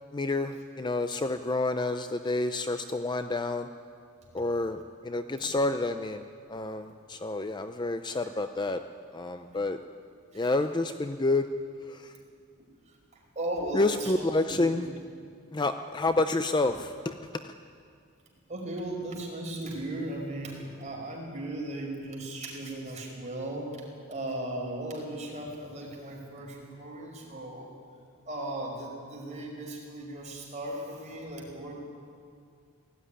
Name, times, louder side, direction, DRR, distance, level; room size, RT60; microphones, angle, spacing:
voice 1, 0.1-3.7 4.3-6.2 6.5-8.8 9.1-9.8 10.4-11.4 13.7-14.9 15.5-17.1, left 2 dB, 20° left, 8 dB, 0.5 m, -29 dB
voice 2, 13.4-14.8 18.5-23.7 24.1-27.7 28.3-31.7, right 1 dB, 35° right, -1 dB, 5.3 m, -37 dB
18.0 x 15.0 x 10.0 m, 2.3 s
head